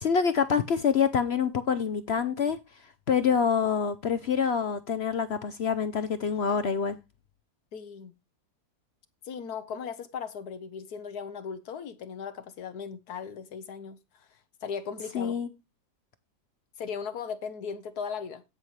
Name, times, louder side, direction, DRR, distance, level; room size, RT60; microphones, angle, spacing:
voice 1, 0.0-2.6 3.1-7.0 15.1-15.5, left 6 dB, 55° left, 0.7 m, -26 dB
voice 2, 7.7-8.1 9.3-14.0 14.6-15.3 16.8-18.4, left 6 dB, 75° left, 1.4 m, -37 dB
17.0 x 5.7 x 3.2 m
omnidirectional pair, 1.7 m